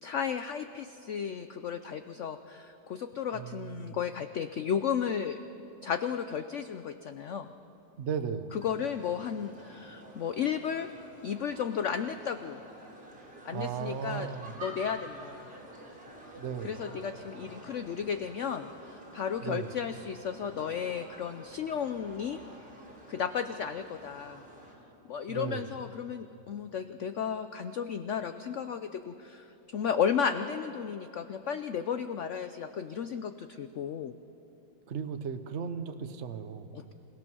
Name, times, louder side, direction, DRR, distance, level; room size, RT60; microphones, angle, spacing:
voice 1, 0.0-5.4 5.8-7.5 8.5-10.9 11.2-12.6 13.4-14.3 14.6-15.5 16.6-22.4 23.1-24.4 25.1-34.1 36.7-36.9, left 7 dB, 70° left, 9 dB, 0.7 m, -34 dB
voice 2, 3.3-4.0 8.0-8.6 13.5-14.6 16.4-16.8 19.4-19.7 25.3-25.7 34.9-36.7, right 7 dB, 50° right, 8 dB, 1.0 m, -36 dB
sound 1, 8.6-24.7, right 1 dB, 30° right, 3.8 m, -49 dB
27.5 x 17.0 x 6.2 m, 2.8 s
omnidirectional pair, 2.0 m